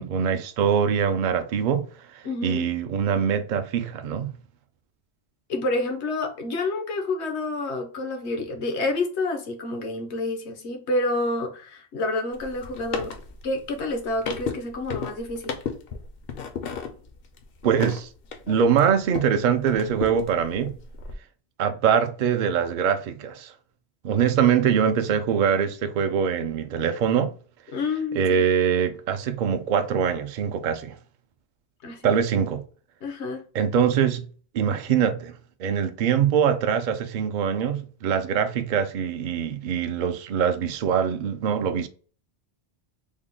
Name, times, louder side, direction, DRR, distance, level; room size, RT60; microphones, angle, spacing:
voice 1, 0.0-1.9 2.1-4.3 17.6-18.1 18.5-20.7 21.6-23.5 24.0-27.3 28.2-31.0 32.0-32.6 33.5-34.3 34.5-41.9, right 7 dB, 60° right, 0.5 m, -23 dB
voice 2, 2.2-2.7 5.5-13.1 13.4-15.6 27.7-28.5 31.8-32.2 33.0-33.4, left 2 dB, 80° left, 1.1 m, -28 dB
sound 1, 12.3-19.4 19.7-21.1, left 6 dB, 65° left, 0.8 m, -35 dB
3.6 x 2.1 x 3.7 m
omnidirectional pair, 1.1 m